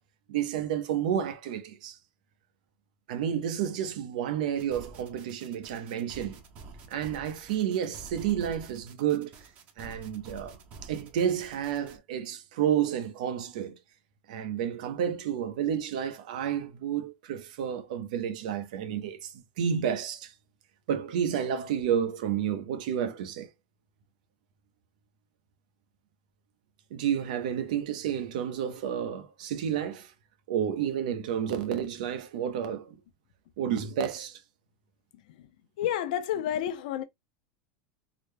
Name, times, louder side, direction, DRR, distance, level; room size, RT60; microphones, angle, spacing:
voice 1, 0.3-2.0 3.1-6.4 6.9-9.3 9.8-13.8 14.3-20.3 20.9-23.5 26.9-30.1 30.5-32.9 33.6-34.4, right 9 dB, 80° right, 0.8 m, -30 dB
sound 1, 4.5-12.0, right 3 dB, 40° right, 0.8 m, -49 dB
voice 2, 35.8-37.0, left 11 dB, 75° left, 0.7 m, -29 dB
3.8 x 2.1 x 3.2 m
supercardioid pair, 145°, 4 cm